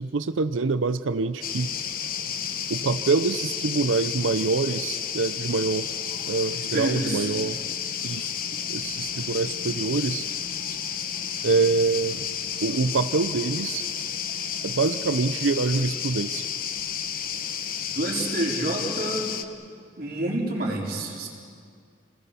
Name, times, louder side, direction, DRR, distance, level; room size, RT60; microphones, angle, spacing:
voice 1, 0.0-1.7 2.7-5.9 6.3-7.6 8.0-8.3 8.7-10.3 11.4-12.3 12.6-13.9 14.6-16.5, right 4 dB, 90° right, 12 dB, 0.6 m, -25 dB
sound 1, 1.4-19.4, left 8 dB, 45° left, 1.1 m, -31 dB
voice 2, 6.7-7.3 17.9-19.3 20.0-21.3, right 1 dB, 50° right, -2 dB, 4.5 m, -28 dB
30.0 x 19.5 x 7.0 m, 2.3 s
head